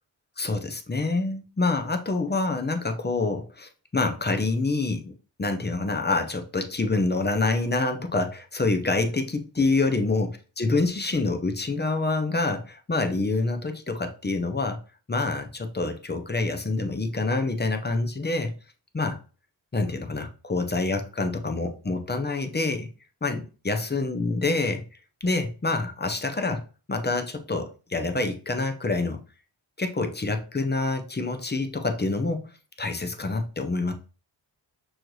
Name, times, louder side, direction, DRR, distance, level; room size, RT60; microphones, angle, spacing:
voice 1, 0.4-5.1 5.4-10.3 10.6-14.8 15.1-18.5 18.9-19.2 19.7-22.9 23.2-24.8 25.2-26.6 26.9-29.2 29.8-32.4 32.8-33.9, left 3 dB, 25° left, 0.7 m, -26 dB
6.3 x 2.5 x 3.1 m
wide cardioid pair, 85°, 45 cm